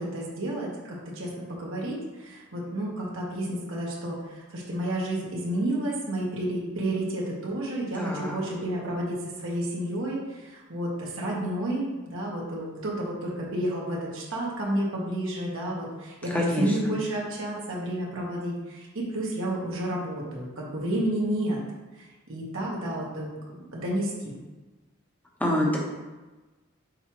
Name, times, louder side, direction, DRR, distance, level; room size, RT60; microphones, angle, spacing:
voice 1, 0.0-21.6 22.0-24.4, right 1 dB, 65° right, -4 dB, 1.3 m, -31 dB
voice 2, 8.0-8.4 16.3-16.8 25.4-25.8, left 1 dB, 5° left, -2 dB, 0.9 m, -25 dB
6.6 x 4.8 x 3.0 m, 1.2 s
head